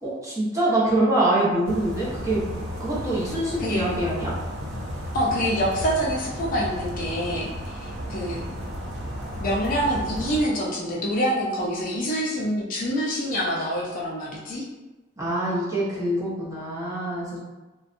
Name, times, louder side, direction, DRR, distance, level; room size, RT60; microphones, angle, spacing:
voice 1, 0.0-4.3 15.2-17.4, right 1 dB, 15° right, -8 dB, 0.7 m, -25 dB
sound 1, 1.6-10.4, equal, 80° right, 0.5 m, -33 dB
voice 2, 5.1-8.4 9.4-14.6, equal, 45° left, -4 dB, 0.5 m, -26 dB
2.6 x 2.2 x 2.4 m, 1.1 s
head